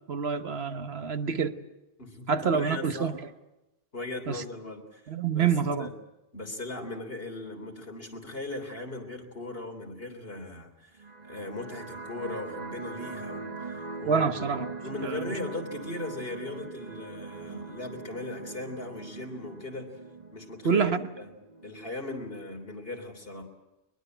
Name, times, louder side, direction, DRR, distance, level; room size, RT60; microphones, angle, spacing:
voice 1, 0.1-1.6 2.3-3.2 4.3-4.4 5.1-5.9 14.1-14.7 15.0-15.3 20.6-21.0, right 6 dB, 80° right, 1.4 m, -27 dB
voice 2, 2.0-3.1 3.9-5.5 5.8-5.9 6.3-14.3 14.8-19.9 20.3-21.3 21.6-23.4, left 2 dB, 70° left, 3.7 m, -38 dB
sound 1, 11.0-21.9, right 3 dB, 40° right, 1.6 m, -42 dB
22.0 x 21.5 x 7.9 m
omnidirectional pair, 1.0 m